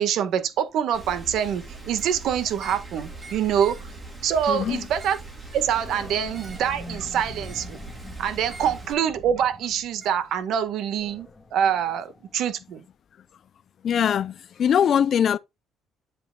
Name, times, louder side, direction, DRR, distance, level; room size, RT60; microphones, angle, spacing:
voice 1, 0.0-3.8 4.2-5.2 5.5-7.8 8.2-12.8, right 9 dB, 70° right, 1.7 m, -25 dB
Rain, 0.9-8.9, right 2 dB, 15° right, 4.2 m, -41 dB
sound 1, 1.9-2.2 2.6-2.9 3.2-3.9 4.8-5.3 6.3-6.7 7.4-7.8 8.4-8.8 10.0-10.2, right 3 dB, 30° right, 2.9 m, -46 dB
voice 2, 4.5-4.8 13.8-15.4, left 8 dB, 50° left, 0.5 m, -22 dB
Animal, 5.6-12.7, left 2 dB, 20° left, 1.9 m, -45 dB
10.0 x 7.8 x 2.4 m
cardioid pair, 115°, 0 cm